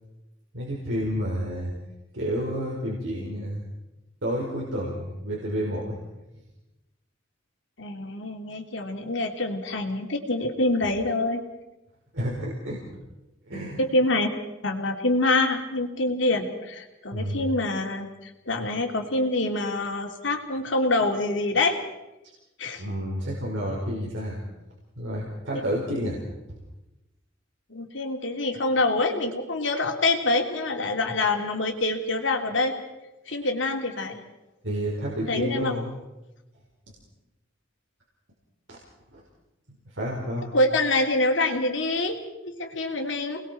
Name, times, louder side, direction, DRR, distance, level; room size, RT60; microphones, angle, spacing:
voice 1, 0.5-1.7 2.1-3.6 4.2-6.0 12.1-12.8 13.5-13.8 17.1-17.4 22.8-24.4 25.0-26.2 34.6-35.9 38.7-38.8 39.1-39.2 39.9-40.5, equal, 80° right, -3 dB, 4.7 m, -30 dB
voice 2, 7.8-11.4 13.8-14.3 14.6-21.8 22.6-22.8 27.7-32.7 33.3-34.2 35.3-35.7 40.5-43.4, left 2 dB, 75° left, 2 dB, 3.0 m, -26 dB
29.5 x 20.5 x 4.5 m, 1.0 s
head